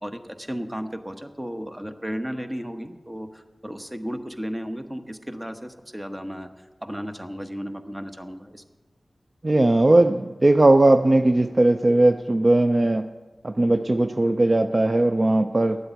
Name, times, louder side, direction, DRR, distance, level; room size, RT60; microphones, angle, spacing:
voice 1, 0.0-6.5 6.8-8.6, equal, 15° right, 8 dB, 1.0 m, -34 dB
voice 2, 9.4-13.0 13.4-15.8, right 2 dB, 40° right, 9 dB, 0.4 m, -18 dB
10.0 x 7.9 x 9.1 m, 1.2 s
wide cardioid pair, 50°, 0 cm